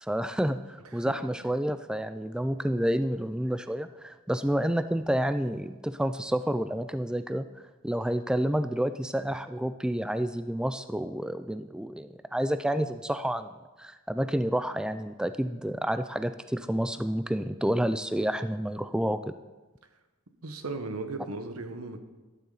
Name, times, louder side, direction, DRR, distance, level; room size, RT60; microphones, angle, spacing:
voice 1, 0.0-7.4 7.8-13.5 13.8-19.3, equal, 5° right, 11 dB, 0.3 m, -29 dB
voice 2, 20.4-22.0, right 3 dB, 90° right, 7 dB, 1.2 m, -36 dB
14.0 x 12.5 x 4.0 m, 1.2 s
head